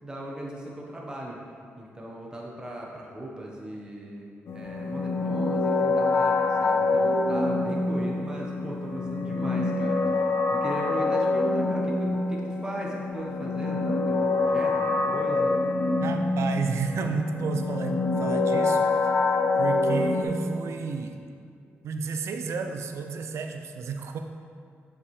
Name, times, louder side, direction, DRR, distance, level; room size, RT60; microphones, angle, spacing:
voice 1, 0.0-1.4 1.8-15.6, right 1 dB, 15° right, -3 dB, 1.0 m, -38 dB
sound 1, 4.5-20.2, left 3 dB, 60° left, 0.5 m, -25 dB
voice 2, 16.0-18.9 19.6-21.2 21.8-24.2, right 5 dB, 75° right, 5 dB, 0.4 m, -31 dB
7.0 x 5.8 x 3.2 m, 2.4 s
cardioid pair, 90°, 5 cm